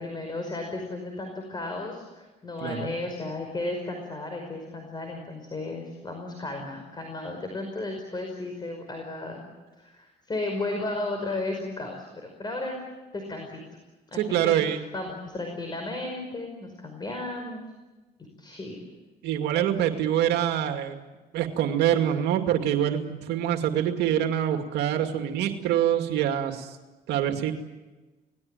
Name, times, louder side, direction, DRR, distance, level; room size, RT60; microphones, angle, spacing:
voice 1, 0.0-9.5 9.8-12.8 13.1-13.6 14.1-17.6 18.4-18.8, left 2 dB, 25° left, 4 dB, 5.3 m, -34 dB
voice 2, 14.2-14.8 19.2-21.0 21.3-26.8 27.1-27.5, right 10 dB, 80° right, 5 dB, 2.4 m, -25 dB
28.0 x 19.5 x 9.1 m, 1.2 s
cardioid pair, 110°, 17 cm